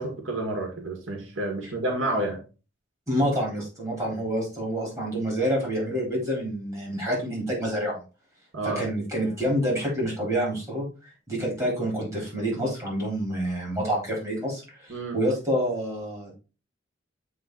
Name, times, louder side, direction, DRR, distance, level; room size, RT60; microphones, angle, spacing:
voice 1, 0.0-2.4 8.5-8.9 14.9-15.2, right 2 dB, 90° right, 1 dB, 1.9 m, -29 dB
voice 2, 3.1-8.0 8.6-10.9 11.3-16.4, equal, 15° right, -4 dB, 4.0 m, -27 dB
7.8 x 3.9 x 4.0 m, 0.33 s
head